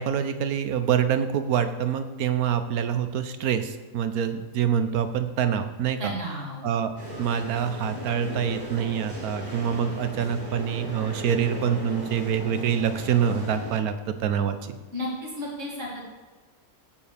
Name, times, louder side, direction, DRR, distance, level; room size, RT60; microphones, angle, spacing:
voice 1, 0.0-6.1 6.6-6.9 7.2-14.8, right 8 dB, 70° right, 9 dB, 1.2 m, -26 dB
voice 2, 6.0-6.7 14.9-16.1, equal, 50° right, -4 dB, 3.0 m, -33 dB
sound 1, 7.0-13.8, equal, 30° right, 3.0 m, -37 dB
15.5 x 7.2 x 3.4 m, 1.3 s
omnidirectional pair, 1.7 m